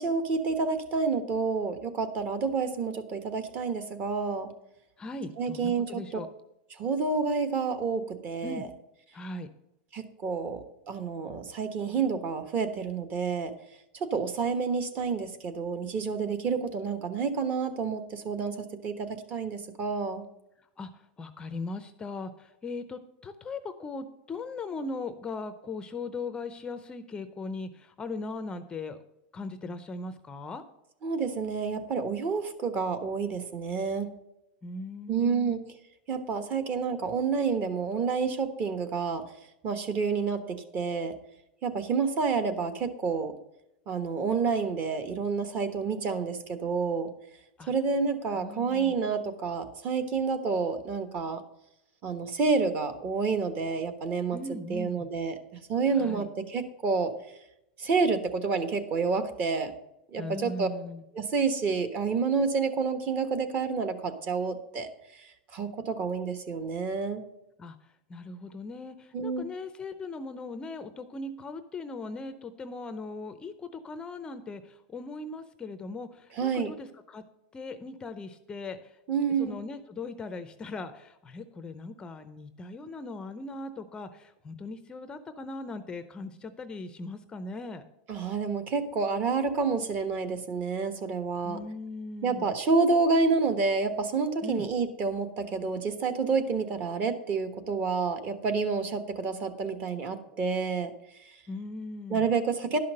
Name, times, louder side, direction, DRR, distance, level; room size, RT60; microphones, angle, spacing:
voice 1, 0.0-4.5 5.4-6.0 6.8-8.7 9.9-13.5 14.0-20.2 31.0-34.1 35.1-35.6 36.1-39.2 39.6-41.1 41.6-43.3 43.9-47.1 47.7-51.4 52.0-54.4 54.7-57.1 57.8-59.7 60.1-60.7 61.1-64.9 65.2-67.2 69.1-69.4 76.4-76.7 79.1-79.6 88.1-91.6 92.2-100.9 102.1-102.8, right 4 dB, 30° right, 9 dB, 1.2 m, -29 dB
voice 2, 5.0-6.3 8.4-8.6 9.1-9.5 20.8-29.0 29.3-30.6 34.6-35.5 47.6-47.7 48.4-49.0 54.3-55.1 55.9-56.3 60.2-61.0 67.6-67.8 68.1-77.2 77.5-79.0 79.4-87.9 91.4-92.5 94.4-94.7 101.5-102.3, left 3 dB, 15° left, 10 dB, 0.6 m, -39 dB
11.5 x 5.7 x 6.5 m, 0.83 s
supercardioid pair, 145°, 5 cm